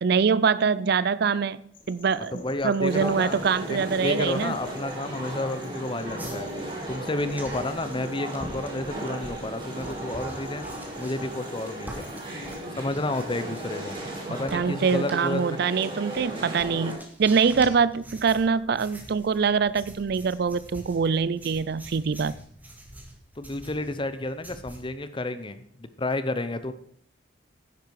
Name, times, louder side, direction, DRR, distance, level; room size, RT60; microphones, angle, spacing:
voice 1, 0.0-1.6 1.9-4.5 14.5-22.4, right 5 dB, 60° right, 18 dB, 0.4 m, -24 dB
sound 1, 1.7-12.6, left 2 dB, 45° left, 2.2 m, -50 dB
voice 2, 2.3-3.4 3.7-10.7 11.0-12.1 12.7-14.0 14.3-15.7 23.4-26.7, left 2 dB, 25° left, 12 dB, 0.8 m, -31 dB
sound 2, 2.9-16.9, right 1 dB, 30° right, 5.3 m, -36 dB
sound 3, 6.2-14.2 14.5-24.8, right 1 dB, 10° right, 2.0 m, -45 dB
10.5 x 10.0 x 4.8 m, 0.64 s
head